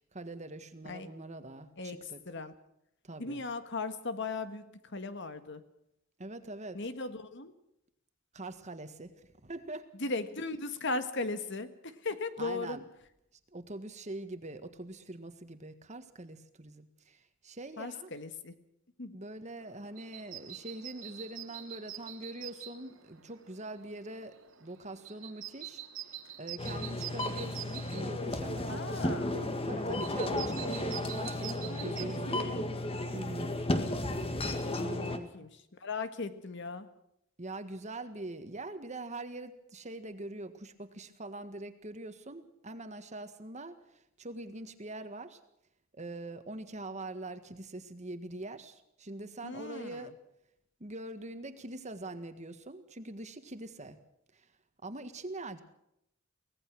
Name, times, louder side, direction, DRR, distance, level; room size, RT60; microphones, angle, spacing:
voice 1, 0.0-2.2 3.0-3.4 6.2-6.8 8.3-9.1 9.4-9.9 12.4-12.8 13.5-18.1 19.1-25.8 26.4-32.5 33.1-33.6 34.8-35.5 37.4-45.4 45.9-50.2 50.8-54.0 54.3-54.5 54.8-55.6, right 2 dB, 35° right, 9 dB, 1.7 m, -43 dB
voice 2, 3.2-5.6 6.7-7.5 10.0-12.8 17.8-18.5 19.0-19.2 28.7-29.3 31.7-32.7 34.7-35.5 35.8-36.9 49.4-50.1, left 3 dB, 60° left, 10 dB, 1.6 m, -38 dB
sound 1, 19.6-32.0, right 11 dB, 75° right, 2.2 m, -46 dB
sound 2, 26.6-35.2, left 1 dB, 30° left, 1.8 m, -34 dB
24.5 x 18.0 x 6.2 m, 0.79 s
head